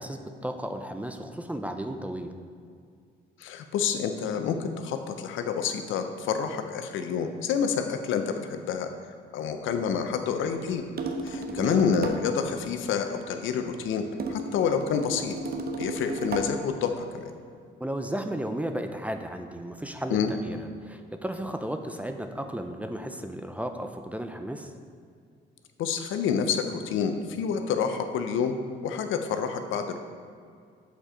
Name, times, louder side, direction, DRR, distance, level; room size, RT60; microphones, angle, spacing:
voice 1, 0.0-2.3 11.5-11.9 17.8-24.7, right 1 dB, 5° right, 6 dB, 0.5 m, -34 dB
voice 2, 3.4-8.9 9.3-10.8 11.2-14.0 14.3-15.4 15.8-17.3 20.1-20.3 25.8-28.5 28.8-30.0, left 7 dB, 80° left, 7 dB, 0.6 m, -28 dB
sound 1, 11.0-12.3 14.2-16.6, right 3 dB, 50° right, 0.7 m, -34 dB
7.2 x 4.4 x 5.0 m, 2.2 s
cardioid pair, 90°, 20 cm